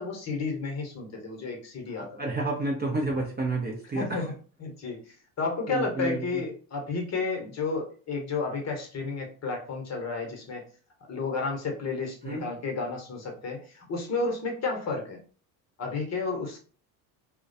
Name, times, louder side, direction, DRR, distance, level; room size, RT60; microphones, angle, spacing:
voice 1, 0.0-2.1 3.9-4.2 4.6-5.0 5.4-10.6 11.1-15.2 15.8-16.6, left 4 dB, 35° left, 2 dB, 0.9 m, -32 dB
voice 2, 1.9-4.3 5.7-6.4 12.2-12.5, right 2 dB, 20° right, -1 dB, 0.5 m, -30 dB
2.3 x 2.1 x 2.6 m, 0.40 s
hypercardioid pair, 80°, 50 cm